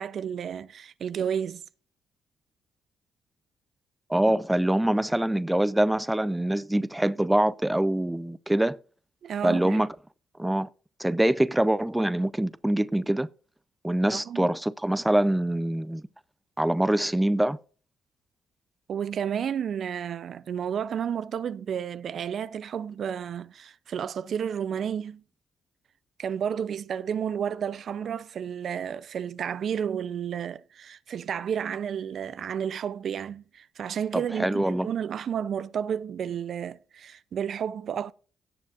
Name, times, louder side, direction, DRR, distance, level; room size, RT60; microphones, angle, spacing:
voice 1, 0.0-1.6 9.2-9.8 14.1-14.6 18.9-25.2 26.2-38.1, right 8 dB, 60° right, 0.5 m, -31 dB
voice 2, 4.1-8.8 9.4-9.9 10.4-10.7 11.0-13.3 13.8-16.0 16.6-17.6 34.4-34.9, right 1 dB, 5° right, 0.5 m, -24 dB
18.0 x 7.4 x 2.4 m
cardioid pair, 90°, 0 cm